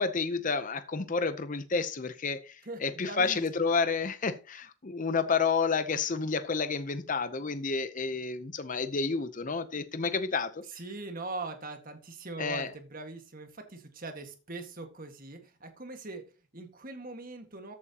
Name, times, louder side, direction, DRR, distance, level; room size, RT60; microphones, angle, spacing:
voice 1, 0.0-10.6 12.4-12.7, left 4 dB, 35° left, 0.7 m, -30 dB
voice 2, 2.7-3.4 10.7-17.7, right 2 dB, 40° right, 1.7 m, -41 dB
14.0 x 8.6 x 2.9 m
head